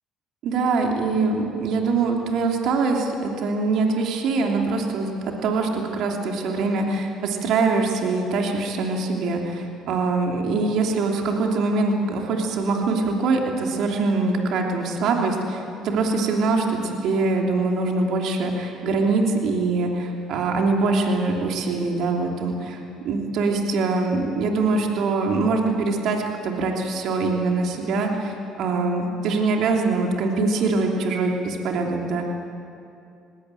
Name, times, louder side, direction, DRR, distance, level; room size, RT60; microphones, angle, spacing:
voice 1, 0.4-5.1 5.4-22.8 23.0-32.3, right 3 dB, 65° right, 1 dB, 3.0 m, -23 dB
19.5 x 18.5 x 9.1 m, 2.6 s
supercardioid pair, 70°, 0 cm